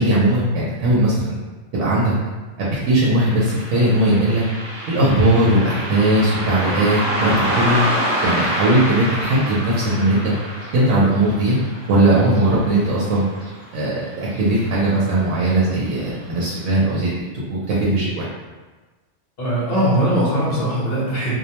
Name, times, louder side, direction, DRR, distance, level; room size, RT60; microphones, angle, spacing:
voice 1, 0.0-1.4 1.7-2.1 2.6-4.4 4.9-7.8 8.2-10.3 10.7-11.6 11.9-13.2 13.7-17.1 17.5-18.3, right 1 dB, 85° right, -7 dB, 0.9 m, -18 dB
Car passing by, 3.2-14.0 14.3-14.4 15.3-15.5 16.0-16.1 16.6-16.7, equal, 50° right, 0.9 m, -27 dB
voice 2, 19.4-21.4, right 1 dB, 55° left, -7 dB, 1.1 m, -20 dB
2.4 x 2.1 x 2.8 m, 1.3 s
omnidirectional pair, 1.2 m